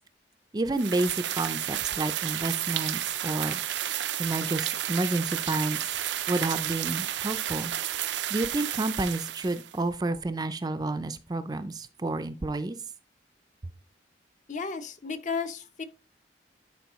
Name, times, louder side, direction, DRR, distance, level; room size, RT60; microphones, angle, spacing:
voice 1, 0.5-3.6 3.9-5.8 6.3-7.7 8.0-12.8, right 2 dB, 20° right, 0.4 m, -30 dB
sound 1, 0.8-9.8, right 12 dB, 85° right, 0.5 m, -32 dB
voice 2, 14.5-15.8, left 5 dB, 45° left, 0.8 m, -33 dB
10.5 x 4.7 x 3.0 m
head